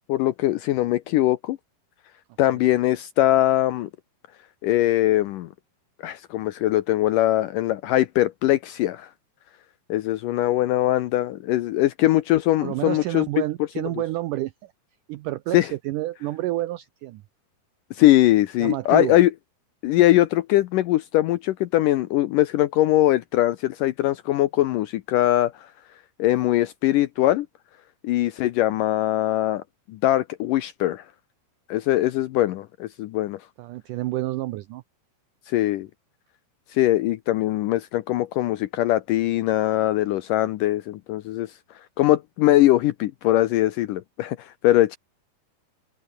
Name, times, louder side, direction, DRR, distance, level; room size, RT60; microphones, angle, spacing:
voice 1, 0.1-1.6 2.4-3.9 4.6-5.5 6.0-9.1 9.9-13.3 15.5-15.7 17.9-19.3 19.8-25.7 26.2-27.5 28.0-29.6 29.9-31.0 31.7-33.4 35.5-35.9 36.7-41.5 42.0-45.0, left 15 dB, 80° left, 2.0 m, -21 dB
voice 2, 12.6-14.7 15.1-17.2 18.6-19.2 33.6-34.8, right 16 dB, 80° right, 1.8 m, -29 dB
open air
omnidirectional pair, 4.6 m